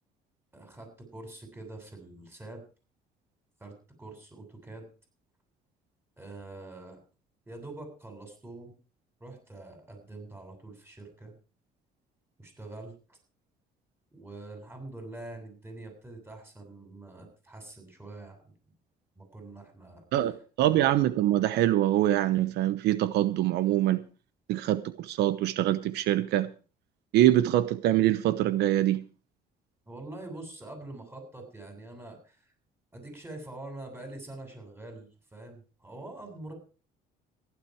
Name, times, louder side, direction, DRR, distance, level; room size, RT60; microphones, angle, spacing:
voice 1, 0.5-2.6 3.6-3.7 4.0-4.9 6.2-7.0 7.5-8.7 9.2-11.3 12.4-13.2 14.1-18.5 19.2-20.0 29.9-32.5 32.9-36.5, right 2 dB, 15° right, 7.4 m, -45 dB
voice 2, 20.1-24.0 24.5-26.5 27.1-29.0, right 13 dB, 80° right, 0.9 m, -24 dB
15.5 x 11.5 x 4.8 m
cardioid pair, 110°, 17 cm